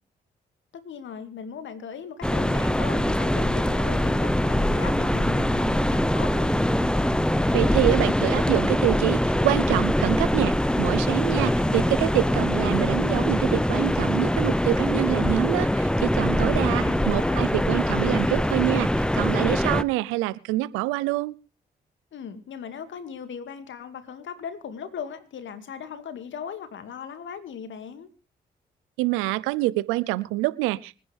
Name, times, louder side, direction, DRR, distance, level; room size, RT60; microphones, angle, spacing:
voice 1, 0.7-6.6 16.6-17.5 22.1-28.1, left 7 dB, 70° left, 10 dB, 2.4 m, -38 dB
sound 1, 2.2-19.8, left 1 dB, 5° left, 0.9 m, -23 dB
voice 2, 7.5-21.4 29.0-31.0, right 18 dB, 85° right, 19 dB, 0.7 m, -26 dB
25.5 x 10.0 x 3.5 m, 0.32 s
hypercardioid pair, 45°, 20 cm